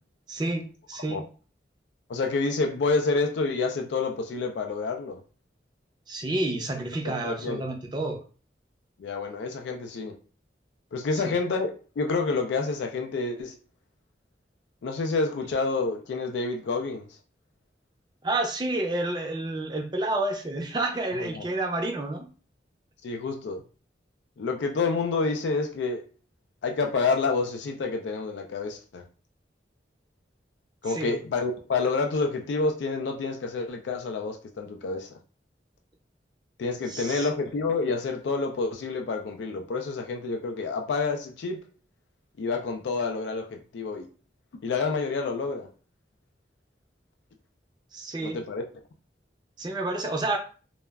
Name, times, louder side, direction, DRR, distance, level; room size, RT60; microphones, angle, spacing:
voice 1, 0.3-1.2 6.1-8.2 11.2-11.3 18.2-22.3 30.9-31.2 36.9-37.3 47.9-48.4 49.6-50.4, right 2 dB, 25° right, 3 dB, 0.4 m, -29 dB
voice 2, 2.1-5.2 7.0-7.7 9.0-10.2 10.9-11.7 12.0-13.6 14.8-17.1 21.2-21.5 23.0-23.6 24.4-26.0 26.6-29.0 30.8-35.1 36.6-41.6 42.4-44.1 44.6-45.7 48.2-48.6, left 4 dB, 75° left, 4 dB, 0.3 m, -28 dB
2.2 x 2.0 x 3.4 m, 0.37 s
head